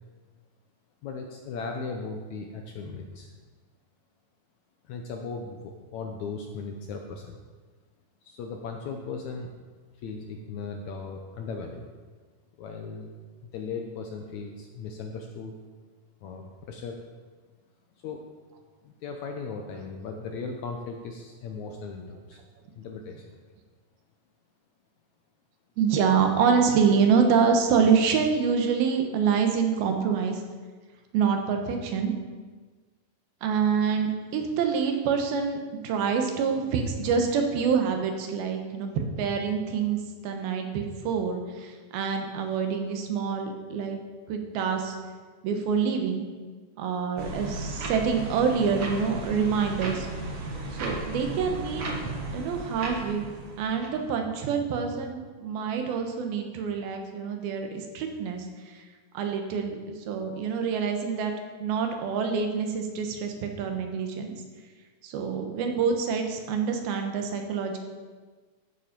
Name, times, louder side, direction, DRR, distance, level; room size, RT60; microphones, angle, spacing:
voice 1, 1.0-3.3 4.9-7.4 8.2-9.5 10.0-11.9 12.6-13.1 13.4-15.5 16.2-17.0 18.0-18.3 18.8-22.4 22.7-23.4, left 4 dB, 75° left, 3 dB, 1.8 m, -37 dB
voice 2, 25.8-30.4 31.1-32.1 33.4-44.0 44.3-45.0 45.4-46.3 46.8-50.1 50.7-51.9 52.3-53.3 53.6-58.5 59.1-61.3 61.6-64.3 65.0-67.8, right 6 dB, 90° right, 4 dB, 3.1 m, -26 dB
sound 1, 47.2-54.0, right 2 dB, 50° right, 1.9 m, -35 dB
14.0 x 7.2 x 5.2 m, 1.4 s
omnidirectional pair, 4.2 m